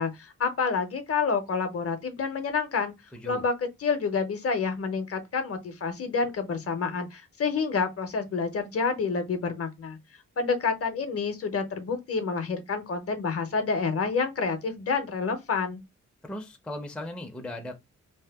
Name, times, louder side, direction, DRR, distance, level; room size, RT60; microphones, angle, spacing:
voice 1, 0.0-2.9 3.3-10.0 10.4-15.8, left 5 dB, 50° left, 0.6 m, -28 dB
voice 2, 16.2-17.8, left 1 dB, 5° left, 0.4 m, -37 dB
2.7 x 2.1 x 3.3 m
wide cardioid pair, 145°, 30 cm